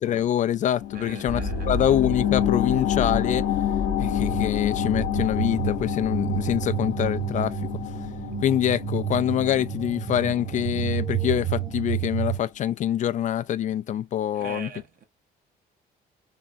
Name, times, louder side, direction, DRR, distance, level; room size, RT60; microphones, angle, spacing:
voice 1, 0.0-1.4 1.7-3.4 4.0-7.5 8.4-14.7, left 11 dB, 45° left, 0.4 m, -25 dB
sound 1, 0.8-11.9 12.3-12.4, left 10 dB, 80° left, 1.0 m, -29 dB
voice 2, 0.9-1.7 14.3-15.0, right 6 dB, 55° right, 1.6 m, -40 dB
sound 2, 1.3-12.4, right 7 dB, 25° right, 1.0 m, -31 dB
3.6 x 3.4 x 2.6 m
cardioid pair, 110°, 17 cm